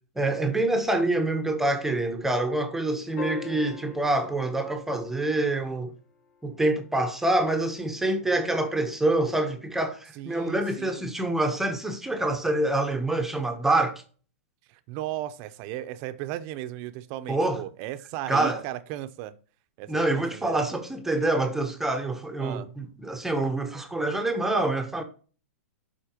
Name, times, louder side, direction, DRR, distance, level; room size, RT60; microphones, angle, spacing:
voice 1, 0.2-5.9 6.4-14.0 17.3-17.6 18.3-18.6 19.9-25.0, right 2 dB, 5° right, 0.9 m, -26 dB
sound 1, 3.2-5.7 7.9-8.0, left 3 dB, 60° left, 3.6 m, -41 dB
voice 2, 10.1-11.1 14.7-19.3 19.8-20.7 22.4-22.7, right 13 dB, 40° right, 0.7 m, -36 dB
11.5 x 4.3 x 2.9 m
hypercardioid pair, 130°, 8 cm